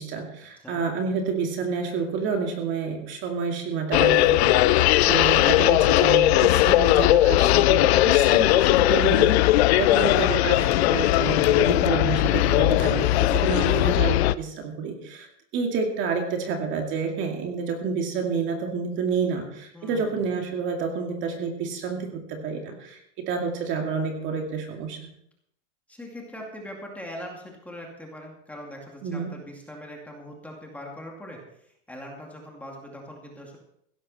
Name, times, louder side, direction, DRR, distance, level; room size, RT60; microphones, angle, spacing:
voice 1, 0.0-4.6 5.1-25.0 29.0-29.3, right 5 dB, 30° right, 3 dB, 2.3 m, -29 dB
sound 1, 3.9-14.3, left 16 dB, 60° left, 0.6 m, -19 dB
voice 2, 4.9-5.4 12.5-13.0 19.7-20.3 25.9-33.6, equal, 5° left, 0 dB, 2.3 m, -41 dB
16.5 x 13.0 x 4.2 m, 0.74 s
supercardioid pair, 165°, 37 cm